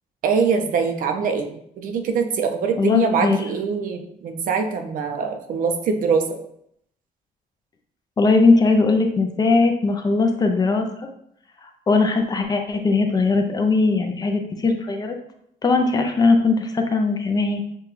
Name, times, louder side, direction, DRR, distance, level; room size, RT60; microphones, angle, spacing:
voice 1, 0.2-6.2, right 5 dB, 65° right, 5 dB, 0.6 m, -23 dB
voice 2, 2.8-3.4 8.2-10.9 11.9-15.2 15.6-17.6, left 3 dB, 25° left, 4 dB, 0.4 m, -19 dB
6.8 x 2.3 x 3.0 m, 0.71 s
cardioid pair, 165°, 15 cm